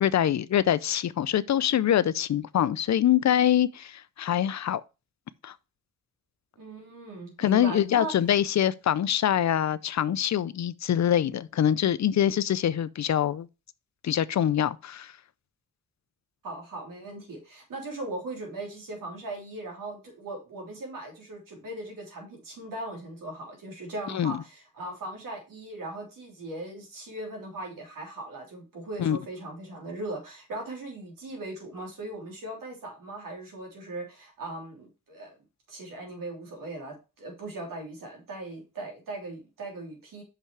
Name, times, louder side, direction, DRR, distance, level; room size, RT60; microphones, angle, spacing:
voice 1, 0.0-4.8 5.4-5.5 7.4-13.5 14.0-15.1 24.1-24.3 29.0-29.2, left 10 dB, 55° left, 0.5 m, -24 dB
voice 2, 6.6-8.1 16.4-35.4 35.7-40.2, right 2 dB, 85° right, 3.2 m, -39 dB
6.1 x 5.6 x 4.6 m
wide cardioid pair, 110°, 33 cm